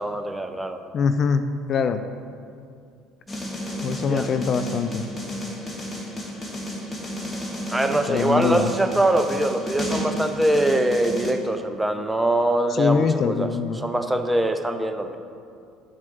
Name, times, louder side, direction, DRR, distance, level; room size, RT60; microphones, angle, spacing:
voice 1, 0.0-0.8 4.1-4.3 7.7-15.2, right 1 dB, 10° right, 6 dB, 0.8 m, -23 dB
voice 2, 0.9-2.0 3.8-5.0 8.1-8.7 12.7-13.8, left 6 dB, 45° left, 9 dB, 0.4 m, -23 dB
sound 1, 3.3-11.3, equal, 20° left, 1.6 m, -32 dB
11.5 x 7.3 x 4.0 m, 2.4 s
figure-of-eight pair, 60°, 0 cm